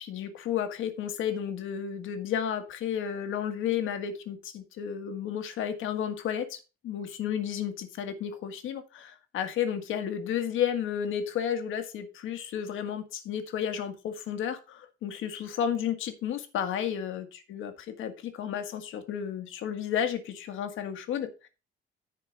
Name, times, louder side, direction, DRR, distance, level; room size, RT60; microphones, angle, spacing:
voice 1, 0.1-6.6 6.8-17.7 18.0-21.5, left 9 dB, 85° left, 8 dB, 1.7 m, -32 dB
11.0 x 4.6 x 5.8 m, 0.31 s
cardioid pair, 90°, 20 cm